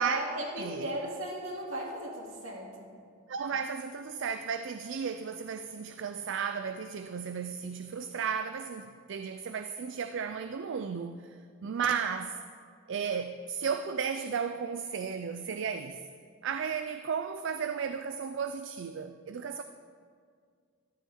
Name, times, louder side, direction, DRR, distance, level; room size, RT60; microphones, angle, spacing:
voice 1, 0.0-2.9 11.7-11.8, right 1 dB, 80° right, -2 dB, 2.3 m, -36 dB
voice 2, 0.6-0.9 3.3-12.4 12.9-16.1 16.4-19.6, right 6 dB, 65° right, 9 dB, 0.4 m, -34 dB
13.5 x 12.0 x 3.6 m, 2.1 s
head